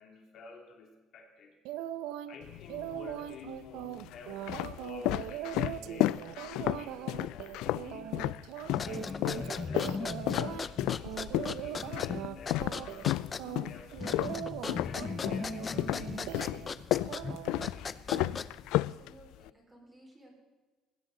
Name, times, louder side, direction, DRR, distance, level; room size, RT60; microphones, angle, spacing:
voice 1, 0.0-1.6 2.3-8.2 8.6-14.5 14.8-16.8 17.4-18.0, left 4 dB, 50° left, 2 dB, 2.7 m, -50 dB
sound 1, 1.6-2.3 2.7-10.7 11.0-12.3 12.6-13.1 13.4-16.7 17.0-17.7 18.1-18.3, right 12 dB, 90° right, 0.8 m, -41 dB
sound 2, 2.4-3.1 3.8-8.9 9.2-15.5 15.8-19.5, left 16 dB, 80° left, 0.4 m, -32 dB
sound 3, 8.7-18.7, left 5 dB, 25° left, 0.6 m, -38 dB
voice 2, 18.6-20.3, right 1 dB, 10° right, -1 dB, 4.8 m, -57 dB
20.5 x 16.5 x 4.0 m, 1.3 s
cardioid pair, 170°, 0 cm